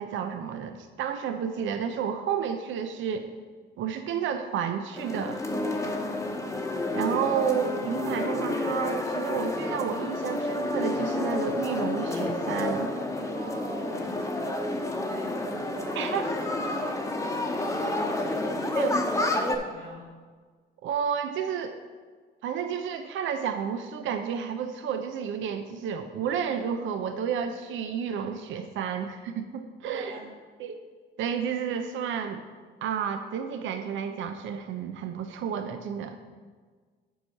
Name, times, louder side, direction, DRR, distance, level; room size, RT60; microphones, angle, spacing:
voice 1, 0.0-3.3 3.8-5.4 6.9-12.9 16.0-16.2 18.8-18.9 20.8-21.8 22.4-30.1 30.6-30.8 31.2-32.4 32.8-36.2, right 7 dB, 75° right, 7 dB, 0.6 m, -31 dB
sound 1, 5.0-19.6, left 2 dB, 15° left, 0.9 m, -30 dB
voice 2, 5.6-6.0 13.3-20.1 29.9-30.3, right 2 dB, 55° right, -3 dB, 2.6 m, -43 dB
7.9 x 4.7 x 5.8 m, 1.5 s
cardioid pair, 90°, 20 cm